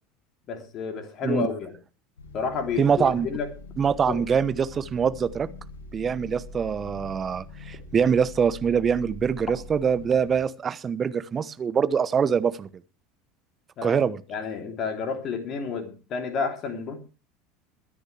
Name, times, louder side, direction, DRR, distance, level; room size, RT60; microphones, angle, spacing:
voice 1, 0.5-1.7 2.3-3.5 4.1-4.2 13.8-14.0 14.3-17.0, left 5 dB, 40° left, 5 dB, 3.2 m, -30 dB
sound 1, 2.2-10.4, left 2 dB, 80° left, 7.3 m, -43 dB
voice 2, 2.8-3.3 3.8-5.5 5.9-12.7 13.8-14.2, right 7 dB, 30° right, 14 dB, 1.0 m, -24 dB
22.5 x 10.0 x 3.4 m, 0.35 s
figure-of-eight pair, 75°, 0 cm